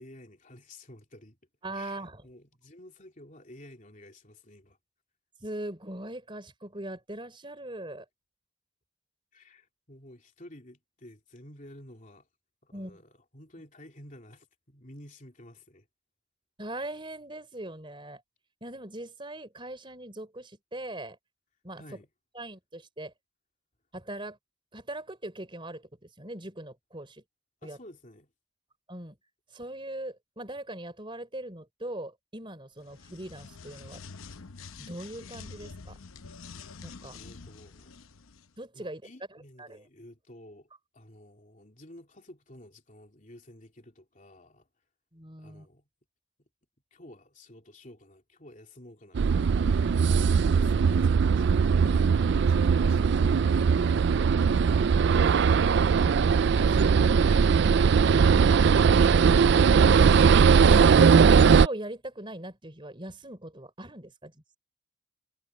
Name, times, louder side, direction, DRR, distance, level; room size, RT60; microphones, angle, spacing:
voice 1, 0.0-1.4 1.7-4.8 9.3-12.3 12.6-15.9 21.8-22.1 27.6-28.3 37.1-37.9 38.7-44.7 45.4-45.9 46.9-54.5 55.4-56.1 56.4-59.4 60.5-61.1, left 1 dB, 35° left, 3.2 m, -51 dB
voice 2, 1.6-2.2 5.4-8.1 12.7-13.0 16.6-18.2 18.6-21.2 21.6-21.8 22.3-23.1 23.9-24.4 24.7-27.2 27.6-27.8 28.9-29.2 29.5-34.0 34.8-36.0 36.8-37.2 38.6-39.0 39.6-39.8 45.1-45.7 61.6-64.6, right 1 dB, 25° right, 3.8 m, -40 dB
sound 1, 32.8-38.5, left 4 dB, 75° left, 0.8 m, -46 dB
sound 2, 49.1-61.7, right 6 dB, 55° right, 0.3 m, -20 dB
head